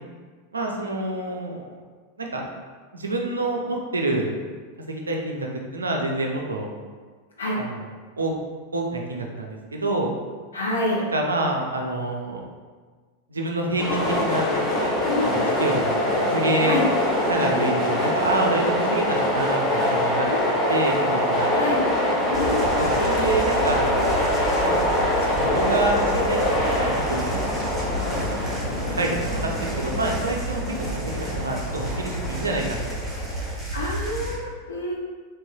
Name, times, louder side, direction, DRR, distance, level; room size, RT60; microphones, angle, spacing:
voice 1, 0.5-1.8 2.2-2.4 2.9-4.3 4.9-6.7 7.6-7.9 8.2-8.3 8.7-10.1 11.0-12.4 13.3-14.5 15.2-16.8 17.3-20.3 20.7-21.5 22.8-23.9 24.6-25.0 25.3-27.3 28.1-28.6 28.9-30.6 30.9-33.1, right 2 dB, 75° right, 1 dB, 0.4 m, -27 dB
voice 2, 10.5-11.0 15.1-15.5 16.6-16.8 20.3-20.5 21.5-21.8 22.3-22.9 33.7-34.9, left 2 dB, 70° left, -4 dB, 0.7 m, -27 dB
sound 1, 13.8-33.5, left 1 dB, 25° left, 0.7 m, -24 dB
sound 2, 22.3-34.3, right 1 dB, 5° right, 0.8 m, -32 dB
3.1 x 3.0 x 2.2 m, 1.5 s
figure-of-eight pair, 90°, 0 cm